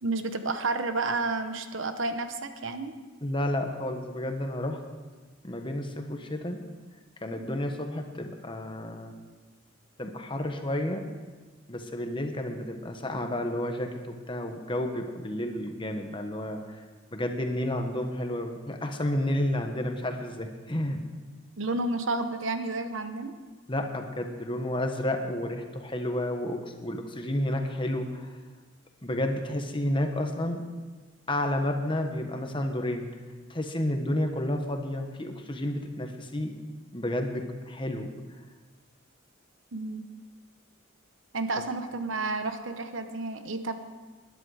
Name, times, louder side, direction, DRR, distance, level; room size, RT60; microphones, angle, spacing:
voice 1, 0.0-2.9 21.6-23.3 39.7-40.1 41.3-43.8, right 3 dB, 70° right, 8 dB, 1.0 m, -31 dB
voice 2, 3.2-4.8 5.4-6.6 7.2-9.2 10.0-11.0 11.7-13.9 14.3-16.7 17.1-21.0 23.7-28.4 29.0-30.6 31.3-33.1 33.5-36.5 36.9-38.1, left 1 dB, 25° left, 4 dB, 1.3 m, -31 dB
20.0 x 10.5 x 5.0 m, 1.3 s
head